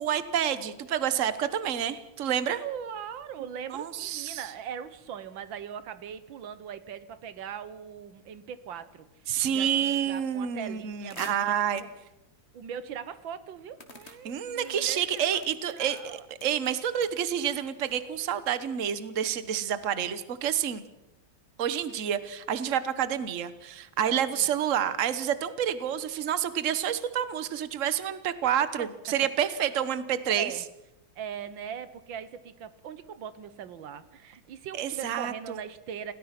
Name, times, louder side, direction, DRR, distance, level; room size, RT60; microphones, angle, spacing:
voice 1, 0.0-2.6 3.7-4.5 9.3-11.8 14.2-20.8 21.6-30.5 34.7-35.6, right 9 dB, 45° right, 13 dB, 1.4 m, -29 dB
voice 2, 2.6-9.1 9.5-11.9 12.5-15.4 15.7-16.2 24.3-24.5 30.3-30.7 31.2-36.1, right 8 dB, 90° right, 13 dB, 1.9 m, -40 dB
sound 1, 11.1-12.0 12.7-12.8 13.8-18.3, left 3 dB, 35° left, 2.2 m, -50 dB
28.0 x 17.5 x 6.0 m, 0.90 s
omnidirectional pair, 2.0 m